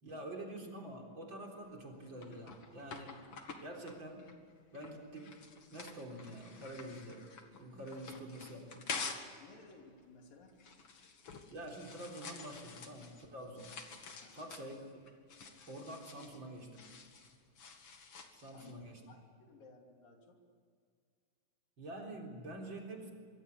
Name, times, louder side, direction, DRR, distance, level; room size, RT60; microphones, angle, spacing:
voice 1, 0.0-3.2 3.6-4.2 4.7-5.4 5.7-7.3 7.6-8.9 11.5-13.8 14.3-14.8 15.7-16.9 18.3-19.0 21.8-23.1, right 1 dB, 35° right, 0 dB, 4.3 m, -47 dB
sound 1, 1.6-9.4 9.7-18.8, left 5 dB, 45° left, 2.6 m, -49 dB
voice 2, 9.4-10.5 14.2-14.6 18.5-20.4, left 3 dB, 75° left, 2 dB, 4.8 m, -58 dB
25.5 x 24.5 x 8.5 m, 2.1 s
omnidirectional pair, 4.0 m